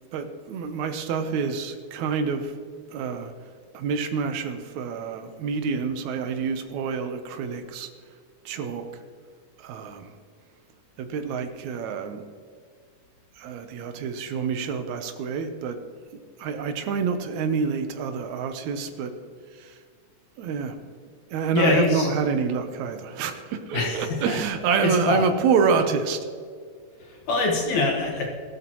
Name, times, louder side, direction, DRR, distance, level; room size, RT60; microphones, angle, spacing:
voice 1, 0.1-2.5 2.9-3.3 3.7-7.9 8.5-9.0 9.6-10.2 11.0-12.2 13.4-15.8 16.4-19.1 19.5-19.8 20.4-20.8 21.3-26.2, right 5 dB, 70° right, 7 dB, 2.0 m, -27 dB
voice 2, 21.5-22.1 23.7-24.4 24.8-25.2 27.0-28.3, left 3 dB, 60° left, 0 dB, 2.7 m, -24 dB
16.0 x 12.5 x 3.1 m, 2.1 s
omnidirectional pair, 3.9 m